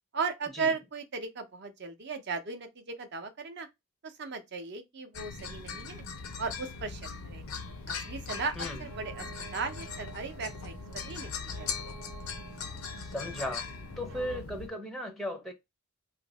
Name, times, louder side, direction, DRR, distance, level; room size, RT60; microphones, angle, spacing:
voice 1, 0.1-3.7 4.0-6.0 6.4-7.4 7.9-9.3 9.5-11.7, right 4 dB, 50° right, 0.6 m, -36 dB
sound 1, 5.1-14.7, left 5 dB, 80° left, 0.6 m, -40 dB
sound 2, 6.6-14.4, right 5 dB, 80° right, 0.9 m, -52 dB
voice 2, 13.0-13.7 14.0-15.5, left 1 dB, ahead, 0.5 m, -36 dB
2.7 x 2.5 x 4.0 m
head